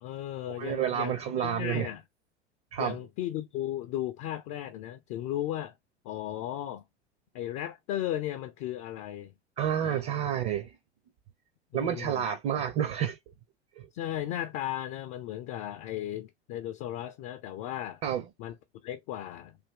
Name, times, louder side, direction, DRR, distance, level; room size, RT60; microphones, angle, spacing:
voice 1, 0.0-2.0 2.8-5.7 6.0-6.8 7.3-9.3 9.8-10.1 11.7-12.3 13.9-18.0 18.4-18.6 18.8-19.6, left 12 dB, 40° left, 0.5 m, -35 dB
voice 2, 0.6-1.9 2.7-3.0 9.6-10.7 11.7-13.2 13.8-13.9 18.0-18.2, right 9 dB, 40° right, 0.8 m, -29 dB
3.4 x 2.6 x 3.6 m
figure-of-eight pair, 85°, 33 cm